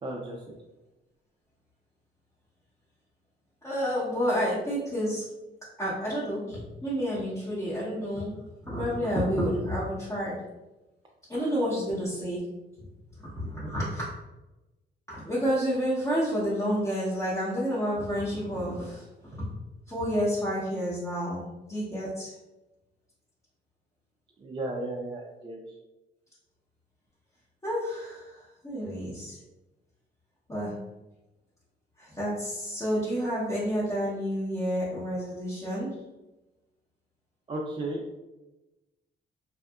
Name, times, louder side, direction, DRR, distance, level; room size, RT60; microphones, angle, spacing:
voice 1, 0.0-0.4 11.3-11.6 24.4-25.8 37.5-38.0, right 1 dB, 25° right, -3 dB, 0.4 m, -35 dB
voice 2, 3.6-5.3 5.8-8.4 8.6-10.4 11.3-12.4 13.2-14.1 15.1-19.0 19.9-22.3 27.6-29.4 30.5-30.7 32.0-35.9, equal, 15° left, -10 dB, 0.8 m, -29 dB
2.7 x 2.2 x 2.3 m, 1.0 s
cardioid pair, 90°, 20 cm